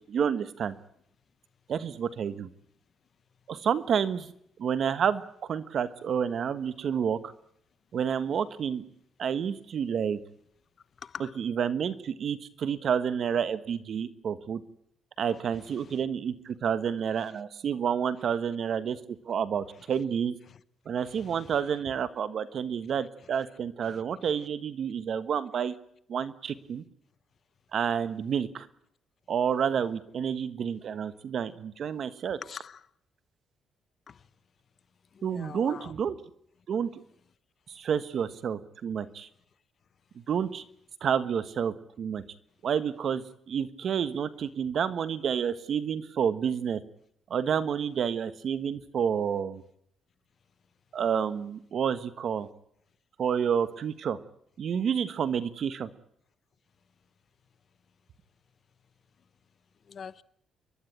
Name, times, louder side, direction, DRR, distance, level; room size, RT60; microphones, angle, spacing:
voice 1, 0.1-0.7 1.7-2.5 3.5-4.3 4.6-7.3 7.9-8.8 9.2-10.2 11.4-14.6 15.2-20.4 20.8-25.7 26.1-26.8 27.7-28.7 29.3-32.4 35.2-36.2 36.7-36.9 37.7-39.3 40.3-40.6 41.0-42.2 42.6-46.8 47.3-49.6 50.9-52.5 53.2-54.2 54.6-55.9, right 7 dB, 60° right, 1.4 m, -29 dB
voice 2, 11.0-11.4 15.3-15.4 15.8-16.0 20.5-20.6 21.1-21.5 23.8-24.0 32.4-32.8 34.1-34.2 35.2-35.9 59.9-60.2, left 7 dB, 50° left, 0.9 m, -44 dB
29.0 x 11.5 x 10.0 m
cardioid pair, 90°, 0 cm